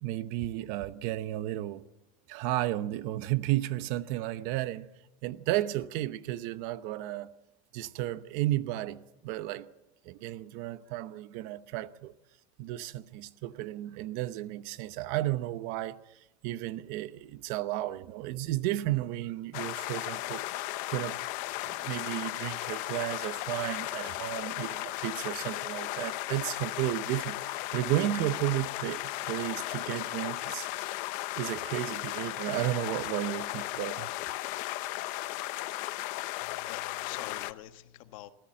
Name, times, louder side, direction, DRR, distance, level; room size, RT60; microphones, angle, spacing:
voice 1, 0.0-1.8 2.3-4.9 5.2-7.3 7.7-9.7 10.0-12.1 12.6-16.0 16.4-20.6 20.9-21.2 21.6-30.7 31.4-34.1, right 15 dB, 45° right, 0.9 m, -33 dB
sound 1, 19.5-37.5, left 18 dB, 45° left, 0.8 m, -36 dB
voice 2, 36.4-38.3, left 15 dB, 60° left, 1.4 m, -46 dB
26.5 x 14.5 x 7.6 m
supercardioid pair, 160°, 19 cm